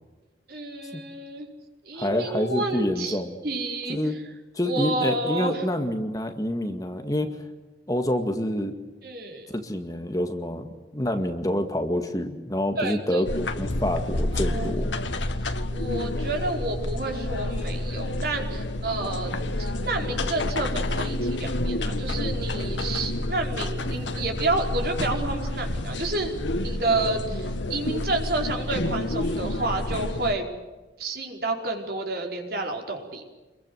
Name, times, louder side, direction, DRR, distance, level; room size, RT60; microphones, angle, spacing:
voice 1, 0.5-1.5 1.8-4.0 4.6-5.6 9.0-9.5 12.8-13.2 14.3-14.8 15.7-19.3 19.6-30.5 31.0-33.3, right 2 dB, 55° right, 3 dB, 5.1 m, -30 dB
voice 2, 2.0-3.4 3.9-4.2 4.5-7.3 7.9-8.8 9.5-14.9, left 1 dB, 20° left, 6 dB, 2.0 m, -27 dB
sound 1, 13.2-30.4, left 1 dB, 90° left, 1.8 m, -29 dB
27.0 x 22.5 x 8.0 m, 1.2 s
head